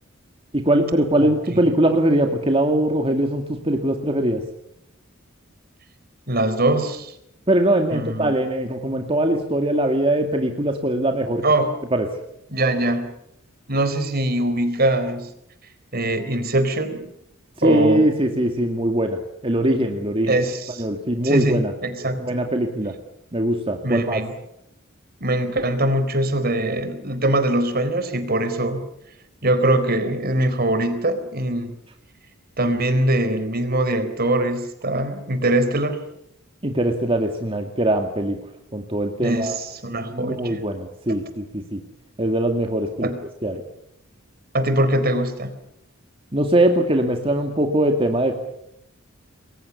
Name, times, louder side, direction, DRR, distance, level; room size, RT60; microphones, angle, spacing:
voice 1, 0.5-4.4 7.5-11.4 11.9-12.1 17.6-20.4 20.8-21.7 22.1-23.0 23.3-24.2 36.6-38.4 38.7-39.6 40.1-41.8 42.2-43.1 43.4-43.6 46.3-48.3, right 1 dB, 25° right, 4 dB, 2.2 m, -21 dB
voice 2, 1.2-1.6 6.3-7.1 7.9-8.4 11.4-11.7 12.5-13.1 13.7-15.3 15.9-17.0 17.6-18.1 20.2-20.8 21.2-22.4 23.8-24.3 25.2-28.8 29.4-31.7 32.6-36.0 39.2-40.6 43.0-43.2 44.5-45.5, right 1 dB, 45° right, 11 dB, 4.0 m, -22 dB
29.0 x 22.0 x 7.1 m, 0.79 s
head